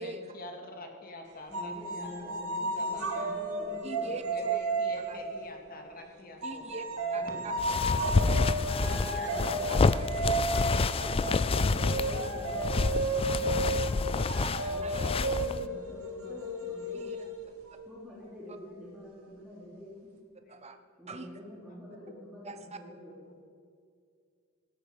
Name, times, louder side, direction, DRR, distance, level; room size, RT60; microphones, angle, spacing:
voice 1, 0.0-3.3 4.3-6.8 7.0-7.3 9.0-10.0 16.2-16.3 16.9-17.0 17.4-17.5 20.4-20.6, left 1 dB, 40° left, 3 dB, 2.2 m, -47 dB
voice 2, 1.5-4.2 4.6-6.4 7.1-10.8 11.2-14.1 14.7-17.1 17.8-20.1 21.0-23.4, left 1 dB, 5° right, -6 dB, 3.2 m, -47 dB
sound 1, 1.5-5.9 6.4-17.8, right 2 dB, 80° right, 2.3 m, -33 dB
voice 3, 3.8-4.6 5.0-5.2 6.4-7.5 9.7-10.1 10.7-11.5 12.0-12.1 12.8-12.9 13.7-13.8 14.1-15.1 16.9-17.2 20.5-20.8 21.1-21.3 22.4-22.8, right 3 dB, 30° right, 8 dB, 0.9 m, -44 dB
sound 2, 7.6-15.7, left 3 dB, 25° left, 0.3 m, -28 dB
18.0 x 13.0 x 5.4 m, 2.2 s
head